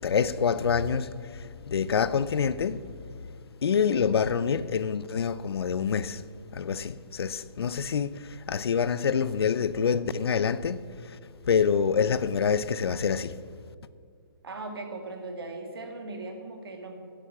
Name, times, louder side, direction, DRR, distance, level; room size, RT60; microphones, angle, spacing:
voice 1, 0.0-3.0 3.6-6.2 6.5-11.2 11.5-13.4, left 6 dB, 85° left, 0.6 m, -26 dB
voice 2, 14.4-17.0, right 2 dB, 75° right, 2.2 m, -38 dB
10.0 x 8.6 x 7.5 m
hypercardioid pair, 165°, 13 cm